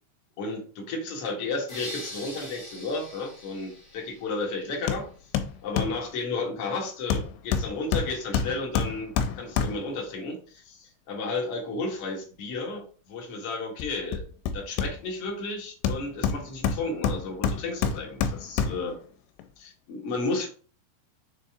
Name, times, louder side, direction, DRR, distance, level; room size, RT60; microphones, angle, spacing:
voice 1, 0.4-5.1 5.6-14.2 14.5-19.0 19.6-20.5, left 3 dB, 55° left, 0 dB, 1.7 m, -33 dB
sound 1, 1.7-4.7, left 1 dB, 30° left, 1.5 m, -42 dB
Hammer, 4.9-5.1 5.3-6.0 7.1-10.0 13.8-15.3 15.8-18.9 19.4-19.5, left 6 dB, 85° left, 2.8 m, -28 dB
6.6 x 4.0 x 3.6 m, 0.41 s
omnidirectional pair, 4.9 m